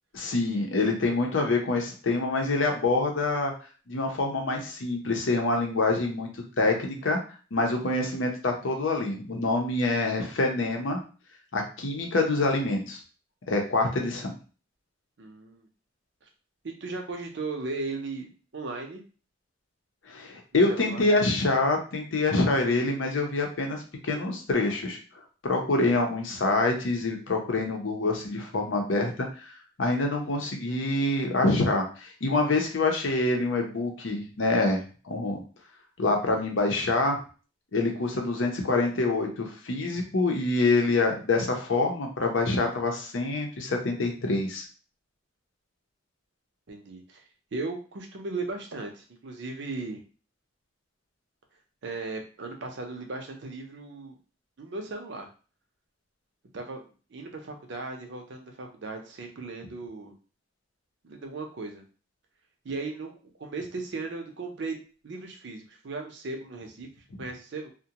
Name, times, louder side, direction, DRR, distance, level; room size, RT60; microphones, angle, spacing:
voice 1, 0.1-3.5 3.9-6.3 6.6-7.2 7.5-11.0 11.5-13.0 13.5-14.4 20.1-25.0 25.4-29.5 29.8-35.4 36.0-37.2 37.7-44.6, left 2 dB, 75° left, 2 dB, 0.7 m, -26 dB
voice 2, 15.2-15.7 16.2-16.3 16.6-19.0 20.7-21.0 46.7-47.2 47.5-50.0 51.8-54.2 54.6-55.3 56.5-60.1 61.0-61.8 62.6-66.9 67.2-67.7, right 3 dB, 65° right, 3 dB, 0.6 m, -37 dB
2.4 x 2.2 x 2.8 m, 0.37 s
head